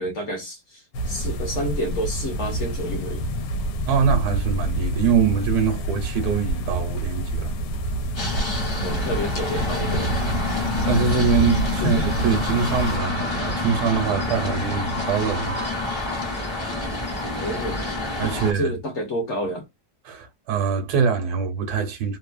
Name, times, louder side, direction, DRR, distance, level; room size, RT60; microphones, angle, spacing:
voice 1, 0.0-3.3 8.8-10.1 11.8-12.1 17.4-17.8 18.2-18.3 18.6-19.7, equal, 50° left, 0.9 m, -29 dB
sound 1, 0.9-13.0, right 1 dB, 75° left, 1.2 m, -27 dB
voice 2, 3.9-7.5 10.5-16.0 18.2-18.8 20.0-22.2, right 6 dB, 70° right, 1.0 m, -24 dB
sound 2, 8.2-18.5, left 2 dB, 35° left, 0.4 m, -28 dB
3.1 x 2.0 x 2.4 m
omnidirectional pair, 2.0 m